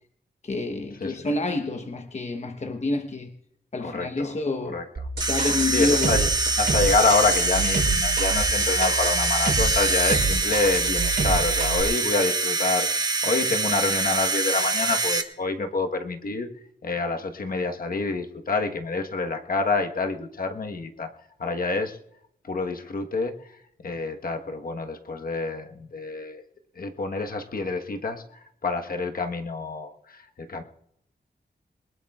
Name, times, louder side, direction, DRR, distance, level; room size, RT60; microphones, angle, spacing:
voice 1, 0.4-3.3 3.7-4.8 5.3-6.2, left 2 dB, 40° left, 5 dB, 1.0 m, -28 dB
voice 2, 1.0-1.3 3.8-4.4 4.6-4.8 5.7-6.3 6.6-12.9 13.2-16.5 16.8-21.1 21.4-22.0 22.4-23.5 23.8-26.4 26.7-30.6, left 3 dB, 55° left, 4 dB, 1.3 m, -27 dB
sound 1, 5.0-11.8, right 3 dB, 65° right, 3.8 m, -28 dB
sound 2, 5.2-15.2, right 3 dB, 25° right, 1.2 m, -24 dB
22.5 x 20.5 x 2.4 m, 0.75 s
wide cardioid pair, 135°, 18 cm